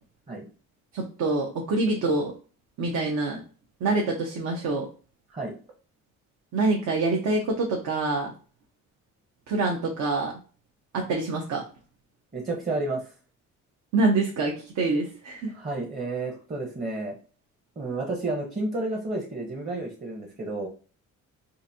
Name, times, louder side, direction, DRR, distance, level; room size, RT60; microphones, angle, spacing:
voice 1, 0.9-2.3 2.8-3.4 3.8-4.9 6.5-8.3 9.5-10.3 10.9-11.6 13.9-15.5, right 3 dB, 65° right, 1 dB, 0.8 m, -26 dB
voice 2, 12.3-13.1 15.5-17.2 17.8-20.7, right 2 dB, 25° right, 0 dB, 0.8 m, -31 dB
3.8 x 2.5 x 2.7 m, 0.38 s
cardioid pair, 90°, 30 cm